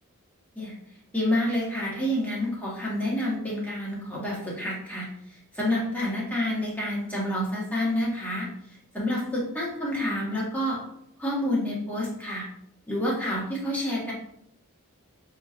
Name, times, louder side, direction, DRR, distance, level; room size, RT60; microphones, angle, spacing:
voice 1, 1.1-8.5 8.9-10.8 11.2-12.4 12.9-14.1, left 1 dB, 5° left, -6 dB, 1.3 m, -28 dB
6.4 x 2.9 x 2.4 m, 0.74 s
head